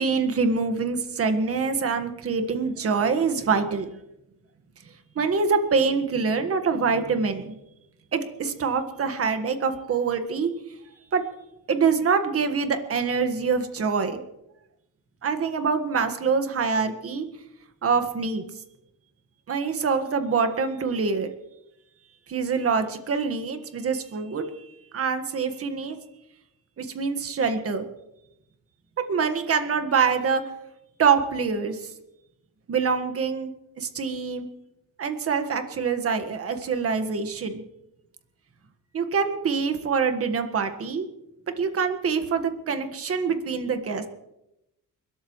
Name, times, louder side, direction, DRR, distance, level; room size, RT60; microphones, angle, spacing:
voice 1, 0.0-3.9 5.1-7.5 8.1-10.5 11.1-11.2 11.7-14.2 15.2-17.3 17.8-18.4 19.5-21.3 22.3-24.4 24.9-26.0 26.8-27.9 29.1-30.4 31.0-31.8 32.7-33.5 33.8-34.5 35.0-37.6 38.9-41.1 41.6-44.1, right 5 dB, 45° right, 7 dB, 1.6 m, -25 dB
29.5 x 13.0 x 3.1 m, 0.88 s
cardioid pair, 145°, 34 cm